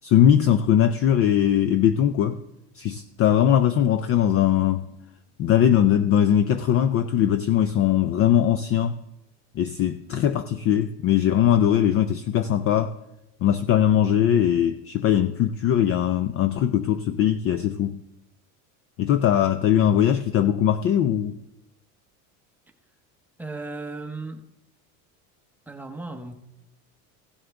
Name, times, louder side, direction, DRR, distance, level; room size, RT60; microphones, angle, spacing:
voice 1, 0.0-2.4 2.8-4.9 5.4-8.9 9.6-12.9 13.4-18.0 19.0-21.4, left 10 dB, 35° left, 11 dB, 0.4 m, -20 dB
voice 2, 23.4-24.4 25.7-26.3, right 3 dB, 5° right, 4 dB, 0.9 m, -35 dB
16.0 x 7.6 x 3.4 m, 0.88 s
supercardioid pair, 125°, 42 cm